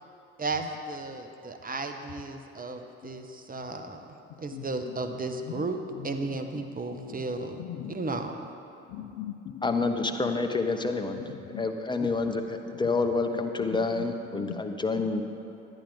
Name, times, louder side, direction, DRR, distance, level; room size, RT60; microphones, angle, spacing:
voice 1, 0.4-4.0 4.4-8.4, right 3 dB, 25° right, 6 dB, 0.9 m, -34 dB
voice 2, 4.3-4.7 5.1-5.6 5.9-6.3 6.5-7.2 7.6-8.0 8.9-9.7 10.2-10.3 11.2-11.7 12.0-12.1 13.6-14.1 14.3-14.6, left 10 dB, 50° left, 8 dB, 0.6 m, -41 dB
voice 3, 9.6-11.2 11.6-15.2, left 3 dB, 15° left, 5 dB, 0.8 m, -28 dB
10.5 x 10.0 x 3.9 m, 2.7 s
hypercardioid pair, 55°, 36 cm